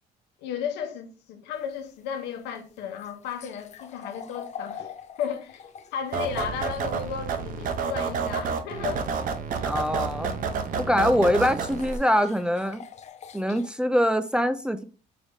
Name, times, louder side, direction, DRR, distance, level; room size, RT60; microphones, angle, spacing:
voice 1, 0.4-4.9 5.2-9.1 9.6-9.8, left 7 dB, 90° left, 0.9 m, -34 dB
sound 1, 1.5-7.1 10.2-10.3 11.4-13.7, left 7 dB, 40° left, 0.5 m, -44 dB
sound 2, 6.1-12.0, right 5 dB, 55° right, 0.7 m, -29 dB
voice 2, 9.6-10.3 10.8-12.8 13.3-14.8, equal, 5° right, 0.3 m, -23 dB
4.7 x 3.4 x 2.7 m
cardioid pair, 110°, 17 cm